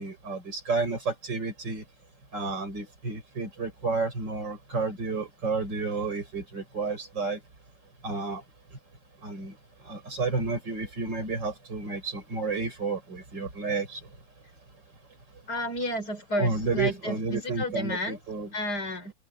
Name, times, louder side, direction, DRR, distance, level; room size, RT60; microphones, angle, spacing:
voice 1, 0.0-1.8 2.3-7.4 8.0-8.4 9.2-9.6 9.8-14.0 16.4-18.5, right 4 dB, 80° right, 6.1 m, -31 dB
voice 2, 15.5-18.2 18.5-19.1, left 1 dB, 60° left, 5.1 m, -31 dB
open air
omnidirectional pair, 1.9 m